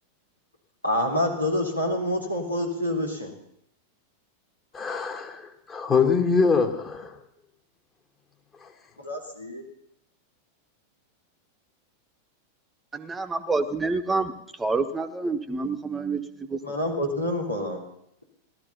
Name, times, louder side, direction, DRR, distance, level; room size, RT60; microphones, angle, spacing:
voice 1, 0.8-3.3 9.0-9.6 16.6-17.8, left 1 dB, 85° left, -1 dB, 3.1 m, -27 dB
voice 2, 4.7-7.1, left 5 dB, 20° left, 3 dB, 2.0 m, -24 dB
voice 3, 12.9-14.3 14.6-16.2 16.5-16.8, right 3 dB, 15° right, 9 dB, 1.2 m, -27 dB
16.0 x 12.5 x 5.6 m, 0.75 s
figure-of-eight pair, 90°, 0 cm